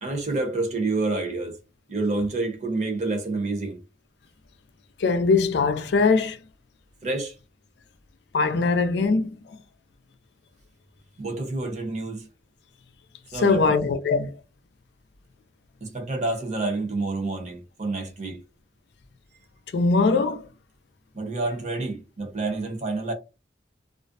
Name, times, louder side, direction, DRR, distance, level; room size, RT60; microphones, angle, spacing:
voice 1, 0.0-1.6 1.9-3.8 7.0-7.3 11.2-12.3 13.3-13.8 15.8-18.4 21.1-23.1, right 3 dB, 40° right, 0.8 m, -28 dB
voice 2, 5.0-6.4 8.3-9.6 13.4-14.3 19.7-20.5, left 4 dB, 65° left, 0.4 m, -21 dB
2.4 x 2.0 x 2.5 m
head